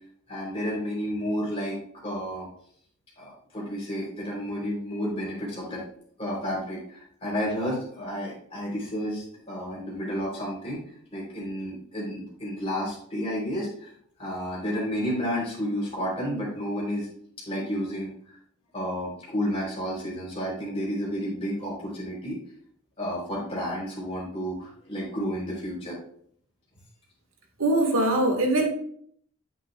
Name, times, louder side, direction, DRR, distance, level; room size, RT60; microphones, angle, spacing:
voice 1, 0.3-2.5 3.2-5.8 6.2-10.8 11.1-13.9 14.2-17.1 17.5-18.4 18.7-22.4 23.0-26.0, equal, 30° left, -4 dB, 3.7 m, -31 dB
voice 2, 27.6-28.7, right 1 dB, 85° right, 2 dB, 1.8 m, -22 dB
8.9 x 8.1 x 2.4 m, 0.62 s
head